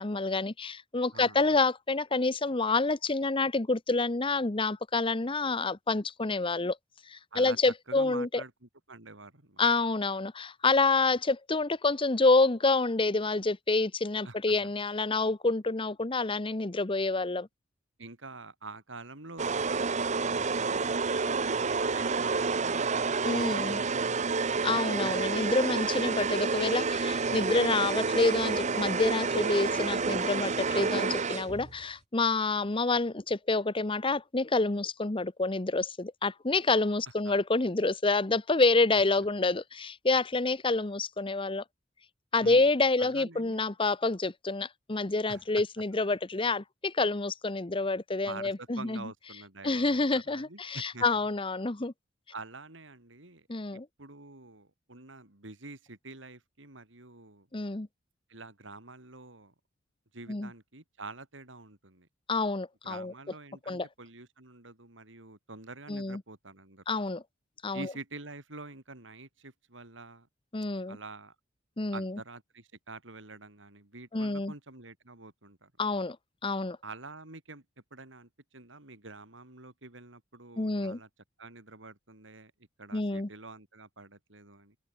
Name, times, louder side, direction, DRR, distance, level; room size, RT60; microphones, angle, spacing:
voice 1, 0.0-6.8 7.1-8.3 9.6-17.5 23.2-23.8 24.6-41.6 42.3-49.0 49.6-51.9 53.5-53.9 57.5-57.9 60.3-60.5 62.3-63.1 63.7-63.9 65.9-66.2 66.9-67.2 67.6-67.9 70.5-71.0 71.8-72.2 74.1-74.5 75.8-76.2 76.4-76.8 80.6-81.0 82.9-83.3, left 3 dB, 25° left, 0.9 m, -28 dB
voice 2, 1.1-1.6 7.3-7.6 7.9-9.6 14.2-14.5 18.0-23.0 23.3-24.6 30.8-31.1 37.2-37.3 42.4-42.7 43.0-43.6 45.3-45.6 48.2-51.1 52.3-53.5 53.7-57.5 58.3-59.5 60.1-62.1 62.8-66.8 67.7-70.3 70.9-71.4 71.9-75.7 76.8-77.6 77.9-81.1 81.4-82.5 82.8-84.8, right 3 dB, 70° right, 3.7 m, -47 dB
sound 1, 19.4-31.8, right 4 dB, 35° right, 0.8 m, -29 dB
open air
head